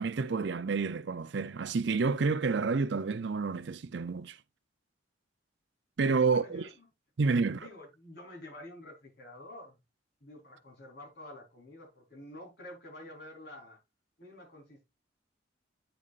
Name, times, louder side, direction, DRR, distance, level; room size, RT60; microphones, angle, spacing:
voice 1, 0.0-4.4 6.0-6.7 7.2-7.7, right 4 dB, 60° right, 0.5 m, -29 dB
voice 2, 6.3-6.7 7.4-9.7 10.2-13.8 14.2-14.8, left 1 dB, 55° left, 4.1 m, -49 dB
8.8 x 7.0 x 2.5 m
head